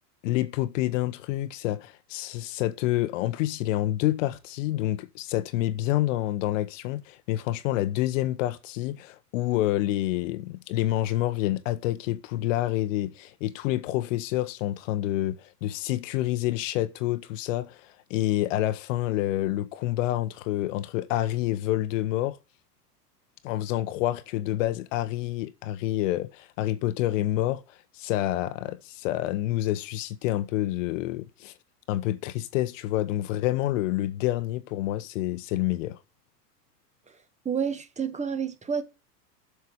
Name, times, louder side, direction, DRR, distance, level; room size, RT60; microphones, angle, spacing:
voice 1, 0.2-22.4 23.4-31.5 31.9-36.0, left 14 dB, 50° left, 1.0 m, -28 dB
voice 2, 37.4-38.8, right 7 dB, 15° right, 1.4 m, -29 dB
7.8 x 7.0 x 8.4 m
figure-of-eight pair, 95°, 48 cm